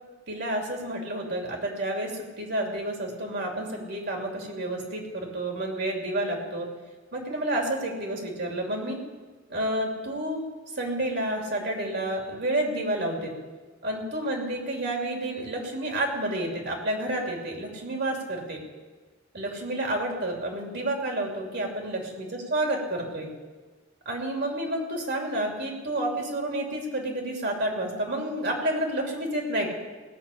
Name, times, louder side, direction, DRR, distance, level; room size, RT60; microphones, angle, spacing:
voice 1, 0.3-6.7 7.1-9.0 9.5-10.4 10.8-13.3 13.8-18.6 19.3-23.3 24.0-29.7, right 1 dB, 55° right, 1 dB, 3.0 m, -30 dB
18.0 x 6.6 x 8.5 m, 1.3 s
head